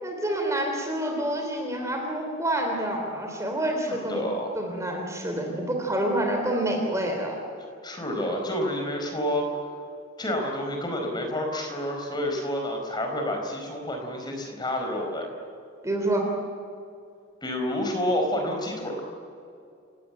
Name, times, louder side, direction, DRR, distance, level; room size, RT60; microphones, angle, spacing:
voice 1, 0.0-4.2 4.5-7.3 15.8-16.3, right 1 dB, 15° right, 2 dB, 3.4 m, -27 dB
voice 2, 3.9-4.5 7.8-9.6 10.2-15.3 17.4-19.0, left 1 dB, 20° left, 2 dB, 4.8 m, -29 dB
29.0 x 18.0 x 9.0 m, 2.5 s
head